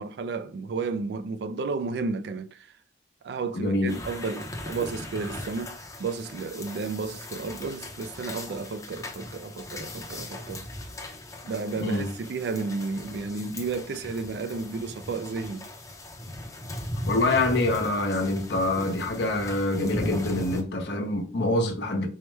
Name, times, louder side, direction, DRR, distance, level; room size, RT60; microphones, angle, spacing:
voice 1, 0.0-2.7 3.2-10.7 11.4-15.7, right 4 dB, 65° right, 0.3 m, -32 dB
voice 2, 3.5-3.9 11.8-12.1 17.1-22.1, left 2 dB, 75° left, 0.8 m, -25 dB
sound 1, 3.9-20.6, left 1 dB, 20° left, 0.6 m, -38 dB
4.5 x 2.1 x 3.2 m
head